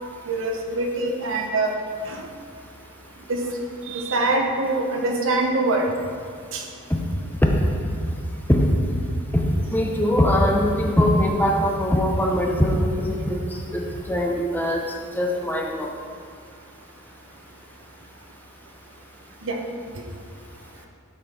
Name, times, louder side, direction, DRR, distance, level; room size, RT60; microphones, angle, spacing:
voice 1, 0.3-1.7 2.1-2.2 3.3-3.4 3.9-5.9 6.5-6.6 19.4-19.6, right 2 dB, 65° right, 1 dB, 1.2 m, -24 dB
voice 2, 9.7-13.4 13.7-14.8 15.1-15.9, left 1 dB, 10° left, 0 dB, 0.8 m, -21 dB
12.0 x 5.0 x 5.3 m, 2.2 s
head